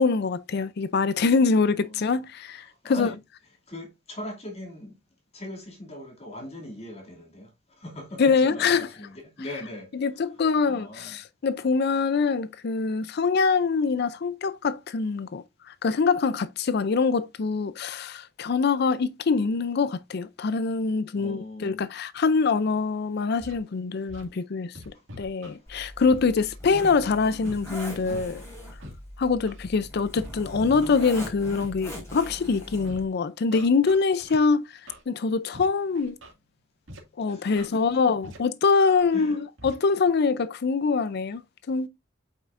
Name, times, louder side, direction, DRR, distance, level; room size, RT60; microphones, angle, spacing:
voice 1, 0.0-3.1 8.2-8.9 10.0-28.4 29.2-34.6 35.1-36.2 37.2-41.4 41.7-41.9, left 4 dB, 60° left, 0.5 m, -24 dB
voice 2, 1.7-2.1 2.6-3.2 3.7-5.0 5.3-7.5 7.8-11.2 21.1-21.8 24.9-25.0 37.3-37.9 39.1-39.4, left 1 dB, 35° left, 2.5 m, -40 dB
Scratching (performance technique), 23.4-23.6 24.1-24.2 24.7-25.6 26.1-26.2 26.8-26.9 27.4-28.3 28.8-28.9 29.5-29.7 30.1-30.3 30.8-31.7 32.2-32.3 32.8-33.0 33.5-34.4 34.9-35.0 35.5-35.7 35.9-36.3 36.9-37.0 37.5-37.7 38.2-38.4 38.9-39.0 39.6-39.7, equal, 85° right, 2.1 m, -43 dB
Zipper (clothing), 25.7-33.0, equal, 15° left, 4.1 m, -40 dB
8.1 x 5.5 x 2.5 m
head